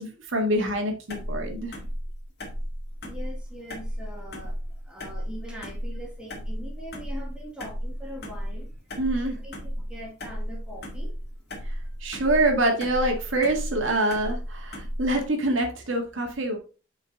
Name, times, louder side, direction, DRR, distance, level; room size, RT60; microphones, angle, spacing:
voice 1, 0.0-1.8 9.0-9.4 12.0-16.6, right 1 dB, 80° right, 1.9 m, -25 dB
sound 1, 1.1-15.3, equal, 55° left, 2.0 m, -34 dB
voice 2, 3.0-4.6 4.8-8.9 9.2-11.1, equal, 5° right, 1.7 m, -42 dB
6.4 x 5.2 x 3.9 m
head